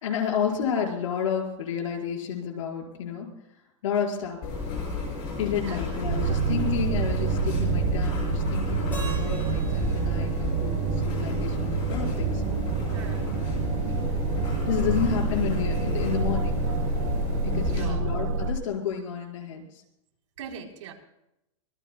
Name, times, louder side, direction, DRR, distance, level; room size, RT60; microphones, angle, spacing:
voice 1, 0.0-3.3 3.8-4.4 5.4-12.4 14.6-16.6 17.4-19.6, left 7 dB, 75° left, 1 dB, 5.0 m, -30 dB
sound 1, 4.4-17.8, left 4 dB, 30° left, 6.6 m, -32 dB
sound 2, 6.0-18.5, right 5 dB, 45° right, 1.2 m, -28 dB
Keyboard (musical), 8.9-11.9, right 2 dB, 10° left, 4.0 m, -45 dB
voice 2, 12.9-13.3 17.7-18.1 20.4-20.9, right 7 dB, 75° right, 1 dB, 3.8 m, -41 dB
25.5 x 18.5 x 2.3 m, 0.84 s
supercardioid pair, 180°, 16 cm